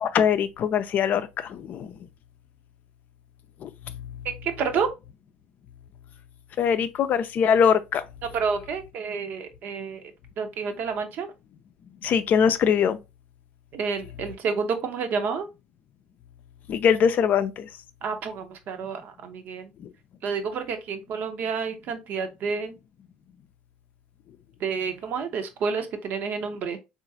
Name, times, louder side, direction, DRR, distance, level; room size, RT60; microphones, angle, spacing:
voice 1, 0.0-1.9 3.6-4.0 6.6-8.0 12.0-13.0 16.7-17.7 19.8-19.9, left 7 dB, 50° left, 0.4 m, -22 dB
voice 2, 4.2-4.9 8.3-10.1 10.4-11.3 13.7-15.5 18.0-19.7 20.2-22.7 24.6-26.8, right 5 dB, 55° right, 0.7 m, -29 dB
3.8 x 2.5 x 2.6 m
hypercardioid pair, 60°, 4 cm